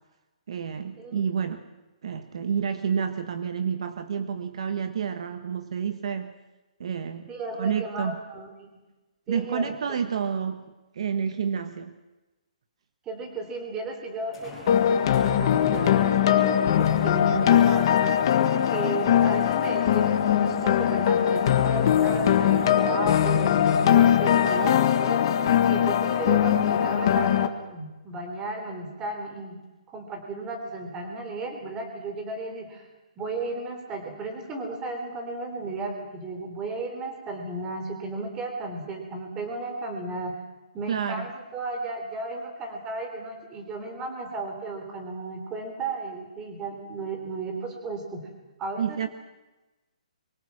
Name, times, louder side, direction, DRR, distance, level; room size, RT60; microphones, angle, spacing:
voice 1, 0.5-1.6 2.0-6.3 6.8-7.3 7.6-8.2 9.3-10.6 10.9-11.9 40.9-41.3 48.8-49.1, right 7 dB, 50° right, 9 dB, 1.3 m, -29 dB
voice 2, 7.3-8.7 9.3-9.7 13.0-18.0 18.3-25.3 25.7-29.6 29.9-32.9 33.2-40.3 40.7-48.3 48.6-49.1, right 2 dB, 15° right, 4 dB, 3.5 m, -34 dB
sound 1, 13.2-13.3 14.3-25.4 26.1-26.2 29.6-29.7, left 3 dB, 5° left, 8.0 m, -50 dB
sound 2, 14.7-27.5, left 9 dB, 35° left, 1.6 m, -21 dB
24.5 x 24.0 x 6.0 m, 1.1 s
hypercardioid pair, 170°, 4 cm